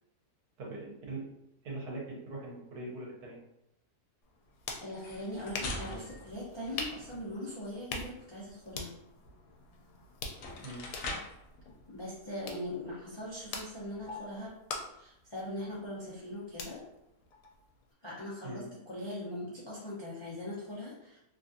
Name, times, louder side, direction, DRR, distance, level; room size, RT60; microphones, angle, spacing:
voice 1, 0.6-1.3 1.6-3.4 10.6-10.9 18.4-18.7, right 2 dB, 75° right, -3 dB, 1.4 m, -41 dB
sound 1, 4.2-17.9, left 4 dB, 85° left, 1.1 m, -45 dB
voice 2, 4.8-8.9 11.9-14.5 14.9-16.8 18.0-21.2, left 1 dB, 45° left, -8 dB, 0.3 m, -41 dB
sound 2, 4.9-7.3 9.7-9.8 10.3-11.5, left 2 dB, 70° left, 0.8 m, -42 dB
3.1 x 2.4 x 2.6 m, 0.87 s
omnidirectional pair, 1.7 m